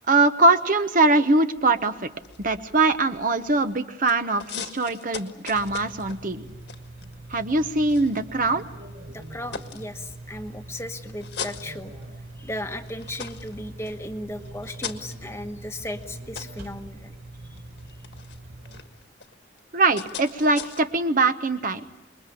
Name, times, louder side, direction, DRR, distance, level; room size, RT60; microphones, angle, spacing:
voice 1, 0.1-2.1 2.4-6.5 7.3-8.6 19.7-21.9, right 3 dB, 45° right, 9 dB, 1.0 m, -22 dB
sound 1, 1.6-3.8 4.1-8.8 9.2-10.5 11.0-12.4 12.8-20.8, left 7 dB, 60° left, 1.6 m, -41 dB
sound 2, 5.5-18.8, right 2 dB, 70° right, 3.9 m, -42 dB
voice 2, 9.1-11.9 12.4-17.1, left 1 dB, 15° left, 6 dB, 1.1 m, -36 dB
27.0 x 22.0 x 8.6 m, 1.0 s
head